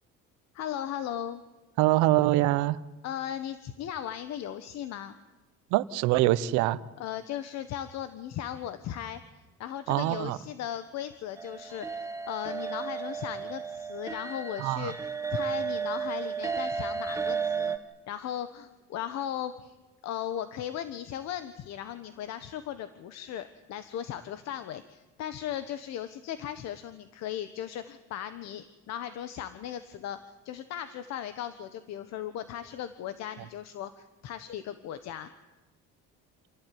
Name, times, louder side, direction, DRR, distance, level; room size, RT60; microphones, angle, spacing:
voice 1, 0.5-1.4 3.0-5.2 7.0-9.2 9.6-14.9 15.3-17.8 18.1-19.7 20.0-30.2 30.4-35.3, left 10 dB, 65° left, 12 dB, 1.5 m, -37 dB
voice 2, 1.8-2.8 5.7-6.8 9.9-10.4 14.6-14.9, right 16 dB, 85° right, 16 dB, 1.1 m, -24 dB
sound 1, 11.4-17.8, right 5 dB, 10° right, 1.6 m, -33 dB
27.5 x 16.5 x 9.5 m, 1.1 s
cardioid pair, 120°, 29 cm